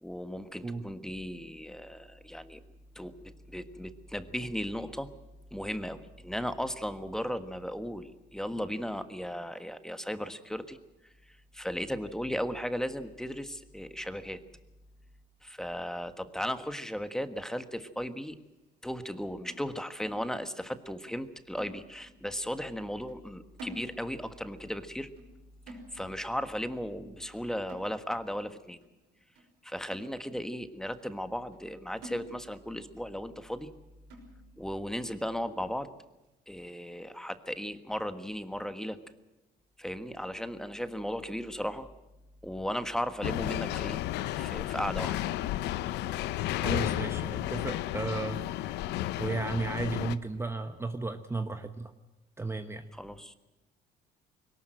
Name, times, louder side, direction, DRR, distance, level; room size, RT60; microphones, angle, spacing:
voice 1, 0.0-2.6 2.9-5.1 5.5-10.8 11.3-14.4 15.4-18.4 18.8-25.1 25.7-28.8 29.6-33.7 34.6-35.9 36.5-39.0 39.8-41.9 42.4-44.0 44.3-45.2 52.9-53.3, equal, 5° left, 10 dB, 1.4 m, -36 dB
sound 1, 19.5-20.8 21.1-21.3 21.6-22.3 22.6-22.8 23.1-24.3 24.6-24.9 25.2-25.4 25.7-26.3 26.7-26.9 27.2-27.4 27.7-28.3 28.8-28.9 29.4-29.5 29.9-30.6 31.0-31.1 31.5-31.7 32.0-32.7 33.1-33.2 33.6-33.7 34.1-34.6 35.1-35.2 35.6-35.8, equal, 90° right, 6.2 m, -50 dB
sound 2, 43.2-50.2, left 14 dB, 85° left, 0.9 m, -32 dB
voice 2, 46.6-48.4 49.2-51.9 52.4-52.9, right 3 dB, 15° right, 8 dB, 1.1 m, -34 dB
22.0 x 19.0 x 7.8 m, 1.0 s
cardioid pair, 110°, 17 cm